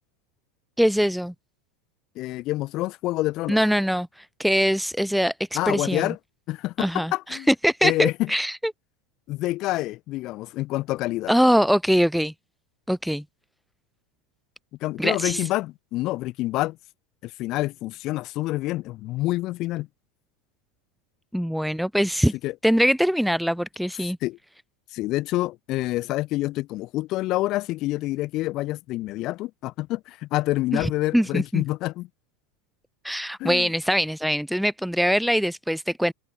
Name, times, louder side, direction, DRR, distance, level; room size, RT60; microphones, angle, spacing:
voice 1, 0.8-1.3 3.5-6.1 6.8-8.6 11.3-12.3 12.9-13.2 15.0-15.5 21.3-22.3 22.6-24.2 30.7-31.6 33.0-36.1, equal, ahead, 0.4 m, -23 dB
voice 2, 2.2-3.6 5.5-6.2 6.5-7.5 7.8-8.3 9.3-11.3 14.8-16.8 17.2-19.9 22.4-22.5 24.0-24.4 24.9-32.1 33.4-33.7, left 18 dB, 45° left, 1.9 m, -27 dB
figure-of-eight pair, 85°, 0 cm